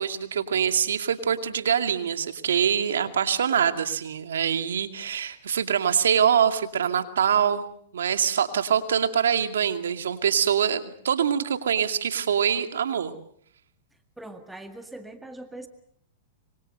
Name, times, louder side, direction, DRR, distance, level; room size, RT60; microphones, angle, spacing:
voice 1, 0.0-7.7 7.9-13.1, right 8 dB, 85° right, 8 dB, 2.4 m, -24 dB
voice 2, 14.2-15.7, right 1 dB, 5° right, 7 dB, 1.9 m, -41 dB
25.5 x 24.5 x 6.7 m, 0.63 s
hypercardioid pair, 125°, 0 cm